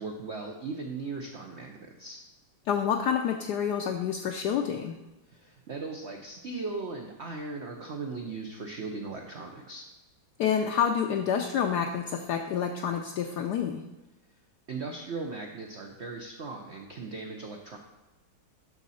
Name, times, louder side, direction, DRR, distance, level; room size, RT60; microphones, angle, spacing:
voice 1, 0.0-2.2 5.3-9.9 14.7-17.8, right 3 dB, 90° right, 2 dB, 0.6 m, -38 dB
voice 2, 2.7-5.0 10.4-13.8, left 8 dB, 75° left, 4 dB, 1.0 m, -28 dB
12.0 x 4.1 x 4.1 m, 1.1 s
omnidirectional pair, 2.2 m